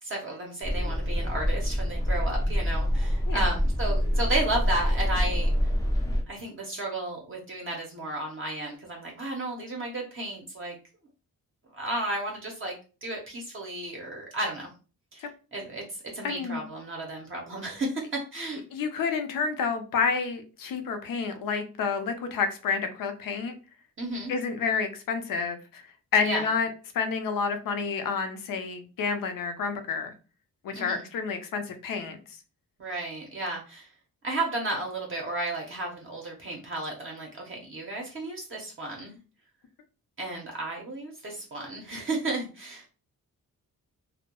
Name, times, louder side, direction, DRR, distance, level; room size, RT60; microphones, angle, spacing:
voice 1, 0.0-5.5 6.3-10.8 11.7-12.7 13.0-14.7 15.1-18.6 24.0-24.3 26.2-26.5 30.7-31.0 32.8-33.9 34.2-39.2 40.2-42.8, right 2 dB, 40° right, 0 dB, 0.6 m, -33 dB
sound 1, 0.6-6.2, equal, 10° left, 0.3 m, -26 dB
voice 2, 16.2-16.6 18.7-23.5 24.3-25.9 26.1-26.7 26.9-30.1 30.6-32.4, left 5 dB, 70° left, 7 dB, 0.5 m, -29 dB
2.2 x 2.0 x 2.9 m, 0.34 s
wide cardioid pair, 140°, 34 cm